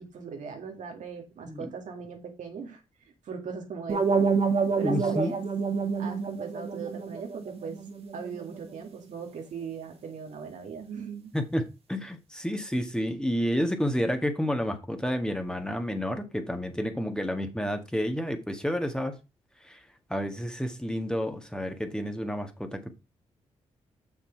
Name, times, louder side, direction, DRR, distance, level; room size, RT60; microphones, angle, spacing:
voice 1, 0.0-4.3 4.7-5.4 6.0-7.8 8.1-11.3, right 6 dB, 70° right, 2.1 m, -39 dB
sound 1, 3.9-8.8, right 5 dB, 50° right, 1.8 m, -28 dB
voice 2, 4.8-5.3 11.3-19.1 19.7-19.8 20.1-22.9, equal, 5° left, 1.8 m, -30 dB
6.7 x 6.1 x 4.6 m
supercardioid pair, 45°, 13 cm